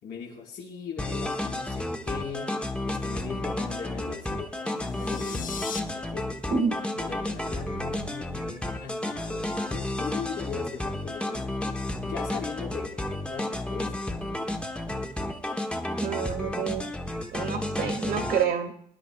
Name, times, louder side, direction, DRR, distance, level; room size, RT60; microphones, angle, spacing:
voice 1, 0.0-6.3 7.0-11.6 12.0-14.6, left 6 dB, 75° left, -3 dB, 4.5 m, -39 dB
sound 1, 1.0-18.4, left 1 dB, 5° left, 1.0 m, -32 dB
sound 2, 4.7-5.8, left 8 dB, 55° left, 0.9 m, -38 dB
voice 2, 16.0-16.8 17.3-18.7, right 6 dB, 60° right, 5 dB, 1.9 m, -28 dB
22.0 x 10.0 x 2.3 m, 0.64 s
cardioid pair, 110°, 17 cm